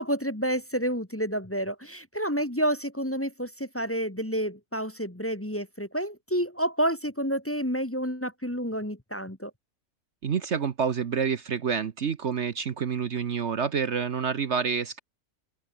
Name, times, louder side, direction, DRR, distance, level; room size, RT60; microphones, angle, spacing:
voice 1, 0.0-9.5, equal, 10° left, 1.5 m, -29 dB
voice 2, 10.2-15.0, right 6 dB, 55° right, 1.3 m, -28 dB
open air
omnidirectional pair, 1.5 m